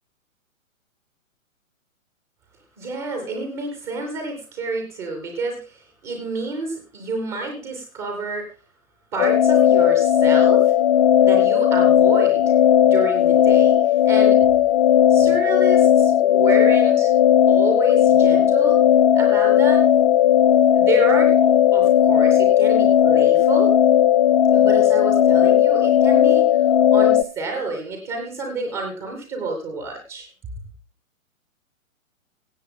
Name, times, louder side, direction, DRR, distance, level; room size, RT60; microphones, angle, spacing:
voice 1, 2.8-8.5 9.1-10.7 11.2-12.4 12.8-14.4 15.1-17.1 17.5-18.8 19.1-19.9 20.7-23.7 24.5-26.6 26.9-30.3, right 3 dB, 5° right, 3 dB, 0.4 m, -29 dB
sound 1, 9.2-27.2, left 10 dB, 40° left, 0.7 m, -16 dB
16.0 x 7.9 x 3.6 m, 0.36 s
figure-of-eight pair, 120°, 40 cm